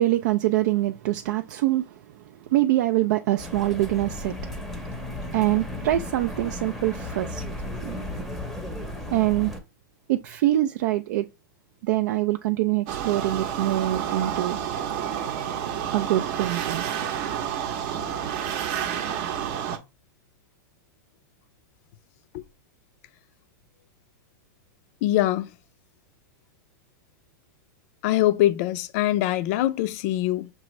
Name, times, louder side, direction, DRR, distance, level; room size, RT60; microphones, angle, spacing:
voice 1, 0.0-2.0 2.5-4.6 5.0-5.1 5.3-8.0 9.1-9.5 10.1-11.3 11.8-14.6 15.9-16.8, right 15 dB, 60° right, 0.4 m, -24 dB
sound 1, 3.4-9.6, left 1 dB, ahead, 0.7 m, -35 dB
sound 2, 12.9-19.8, right 9 dB, 40° right, 0.7 m, -29 dB
voice 2, 25.0-25.5 28.0-30.5, left 14 dB, 45° left, 0.5 m, -23 dB
6.1 x 2.5 x 3.1 m
supercardioid pair, 145°, 11 cm